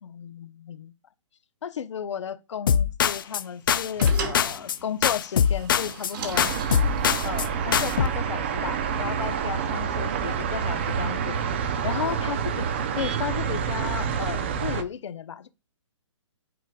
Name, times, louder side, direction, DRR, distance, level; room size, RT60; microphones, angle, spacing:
voice 1, 0.0-0.9 1.6-6.5 7.2-11.4 11.8-12.7 12.9-15.5, left 8 dB, 65° left, 0.8 m, -34 dB
sound 1, 2.7-3.4 3.7-4.8 5.0-6.1 6.4-7.5 7.7-8.1, left 8 dB, 45° left, 0.5 m, -23 dB
sound 2, 3.2-8.2, right 5 dB, 45° right, 1.5 m, -38 dB
sound 3, 6.3-14.8, right 7 dB, 20° right, 0.5 m, -28 dB
9.1 x 4.9 x 2.3 m
hypercardioid pair, 170°, 16 cm